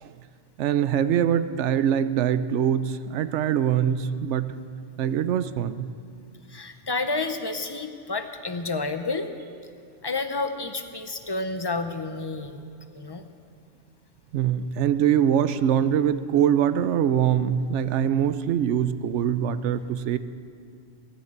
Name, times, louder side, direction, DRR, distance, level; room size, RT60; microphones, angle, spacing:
voice 1, 0.6-4.5 5.0-5.9 14.3-20.2, right 9 dB, 80° right, 13 dB, 0.9 m, -23 dB
voice 2, 6.5-9.3 10.0-12.6 12.9-13.2, left 3 dB, 25° left, 8 dB, 0.6 m, -30 dB
16.0 x 7.2 x 8.7 m, 2.3 s
omnidirectional pair, 1.2 m